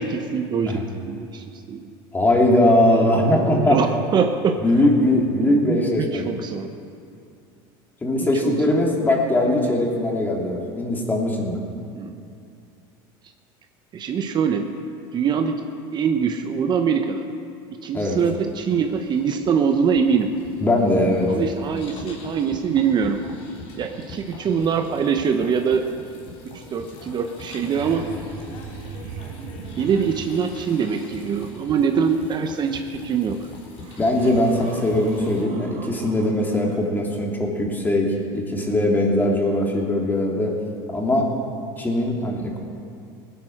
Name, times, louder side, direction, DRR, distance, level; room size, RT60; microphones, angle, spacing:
voice 1, 0.0-1.9 2.9-4.6 5.5-6.7 8.4-8.7 11.9-12.2 13.9-14.7 15.1-17.3 17.7-20.3 21.3-23.3 23.8-25.8 26.4-28.1 29.8-33.4, right 6 dB, 40° right, 6 dB, 1.0 m, -23 dB
voice 2, 2.1-3.8 4.6-6.3 8.0-11.6 17.9-18.2 20.6-21.3 34.0-38.1 38.3-40.5 40.9-41.3 41.8-42.6, left 1 dB, 15° left, 0 dB, 2.9 m, -20 dB
sound 1, 18.3-35.4, left 2 dB, 55° left, 3.7 m, -42 dB
sound 2, 27.1-27.2 27.3-30.4 32.9-33.0 33.7-36.8 39.3-39.4, right 5 dB, 65° right, 2.1 m, -39 dB
18.0 x 10.5 x 6.5 m, 2.5 s
supercardioid pair, 110°, 12 cm